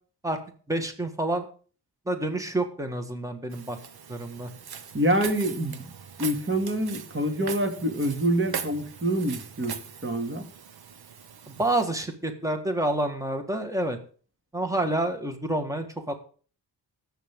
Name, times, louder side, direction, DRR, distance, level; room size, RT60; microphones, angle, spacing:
voice 1, 0.7-1.5 2.1-3.8 4.1-4.5 11.5-14.0 14.5-16.1, right 1 dB, 10° right, 6 dB, 1.7 m, -28 dB
Walk footsteps, 3.5-11.8, right 7 dB, 65° right, 1.3 m, -40 dB
voice 2, 4.9-5.8 6.2-10.5, right 1 dB, 30° right, 4 dB, 2.4 m, -26 dB
19.0 x 8.0 x 3.7 m, 0.41 s
cardioid pair, 100°, 40 cm